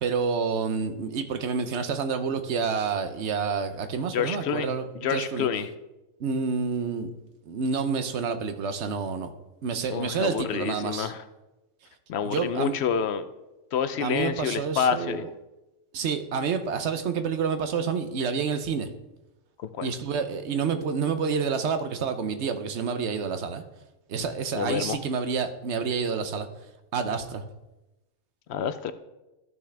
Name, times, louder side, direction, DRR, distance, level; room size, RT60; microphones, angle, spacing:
voice 1, 0.0-5.5 6.2-7.1 7.5-9.3 9.6-11.1 12.2-12.7 14.0-15.3 15.9-18.9 19.8-23.6 24.1-26.5 26.9-27.4, right 5 dB, 60° right, 9 dB, 1.0 m, -28 dB
voice 2, 4.1-4.7 5.0-5.7 9.9-11.2 12.1-13.3 13.7-15.2 19.6-19.9 24.5-25.0 28.5-28.9, left 7 dB, 65° left, 12 dB, 0.7 m, -28 dB
13.5 x 6.0 x 3.3 m, 1.0 s
omnidirectional pair, 1.4 m